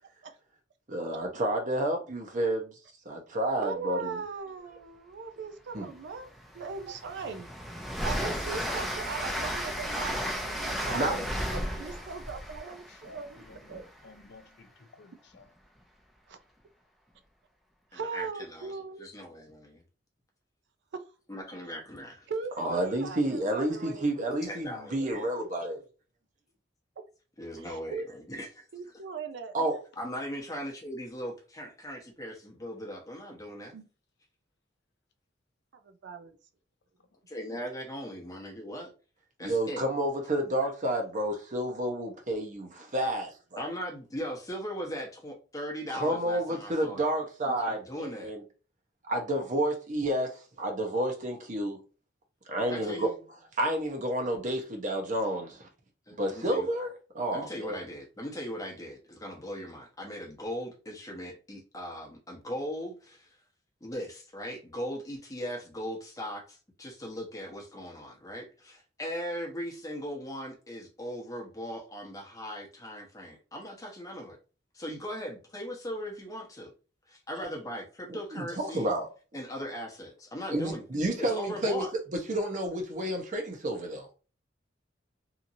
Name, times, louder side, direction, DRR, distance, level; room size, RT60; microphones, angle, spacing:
voice 1, 0.9-2.8 3.1-4.2 5.7-5.9 10.9-11.1 22.6-25.8 29.5-29.7 39.4-43.7 45.9-48.4 49.1-51.8 52.5-53.1 53.6-55.7 56.1-57.8 78.1-79.1 80.5-81.8 82.1-84.1, right 1 dB, 45° right, 0.8 m, -30 dB
voice 2, 3.6-7.5 8.0-10.2 10.5-11.3 11.5-13.8 16.3-16.4 17.9-19.1 20.9-21.0 22.3-24.3 25.0-25.1 27.6-28.1 28.7-29.5 33.7-33.9 35.8-36.4 37.5-37.6, right 5 dB, 65° right, 0.4 m, -39 dB
Train, 5.8-5.9 6.4-14.1, equal, ahead, 0.5 m, -34 dB
voice 3, 12.9-15.5, left 3 dB, 65° left, 0.5 m, -55 dB
voice 4, 17.9-18.7 19.0-19.8 21.3-22.3 24.5-25.1 27.4-28.6 30.0-33.7 37.3-38.9 39.4-39.8 43.6-47.1 47.4-48.3 52.7-53.2 56.1-56.7 57.3-63.4 63.8-74.4 74.7-76.7 77.1-78.9 79.3-80.8 81.2-81.9, equal, 20° left, 0.9 m, -39 dB
2.9 x 2.6 x 2.6 m
head